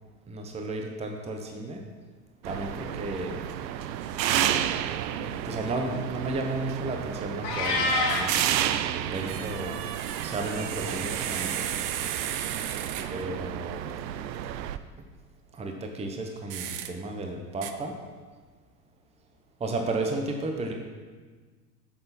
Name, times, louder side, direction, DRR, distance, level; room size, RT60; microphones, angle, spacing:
voice 1, 0.3-1.8 2.4-3.4 5.1-8.3 9.0-9.7 10.2-11.7 13.1-13.9 15.5-18.0 19.6-20.7, right 2 dB, 15° right, 3 dB, 0.8 m, -33 dB
sound 1, 2.4-14.8, right 11 dB, 85° right, 0.6 m, -31 dB
Meow, 7.4-8.3, left 2 dB, 75° left, 2.0 m, -26 dB
sound 2, 8.1-8.4 9.1-13.3 16.5-16.9 17.6-17.7, right 10 dB, 40° right, 0.6 m, -35 dB
8.6 x 6.6 x 4.2 m, 1.5 s
hypercardioid pair, 100°, 50 cm